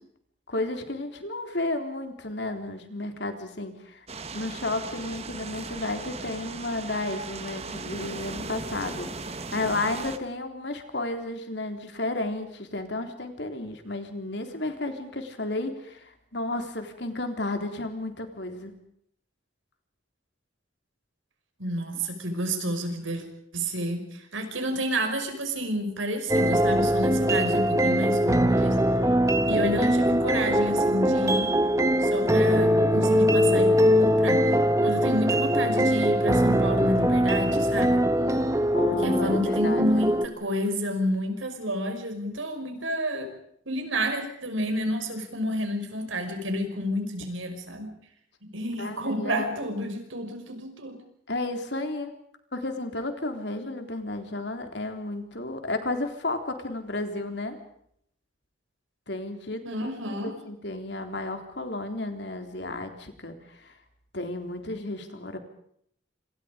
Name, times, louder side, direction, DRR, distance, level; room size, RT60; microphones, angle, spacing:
voice 1, 0.5-4.1 4.3-9.1 9.5-18.7 38.7-40.0 48.8-49.6 51.3-52.1 52.5-57.6 59.1-63.7 64.1-65.4, left 2 dB, 60° left, 6 dB, 3.6 m, -32 dB
sound 1, 4.1-10.2, right 3 dB, 30° right, 1.6 m, -37 dB
voice 2, 21.6-23.3 23.5-28.8 29.5-31.5 32.0-34.5 34.8-38.0 39.0-43.3 43.7-48.0 48.4-51.0 59.6-60.4, equal, 85° right, 6 dB, 5.7 m, -30 dB
sound 2, 26.3-40.3, equal, 15° right, 1.1 m, -22 dB
27.5 x 27.0 x 5.2 m, 0.69 s
head